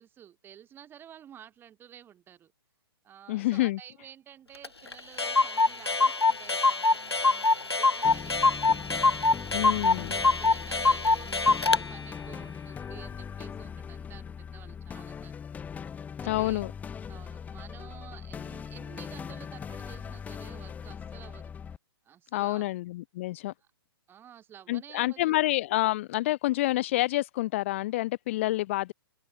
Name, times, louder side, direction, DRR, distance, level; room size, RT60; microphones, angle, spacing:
voice 1, 0.0-2.5 3.0-8.8 9.4-15.3 16.2-16.6 17.1-21.5 22.0-22.7 23.6-23.7 24.1-25.4, right 10 dB, 15° right, 4.4 m, -51 dB
voice 2, 3.3-3.8 9.5-10.2 16.2-16.7 22.3-23.5 24.7-28.9, left 17 dB, 30° left, 0.4 m, -28 dB
Clock, 4.6-4.7 4.9-5.0 5.2-11.8, left 3 dB, 90° left, 0.7 m, -24 dB
sound 1, 8.0-21.8, left 7 dB, 10° left, 3.7 m, -40 dB
figure-of-eight pair, 125°, 13 cm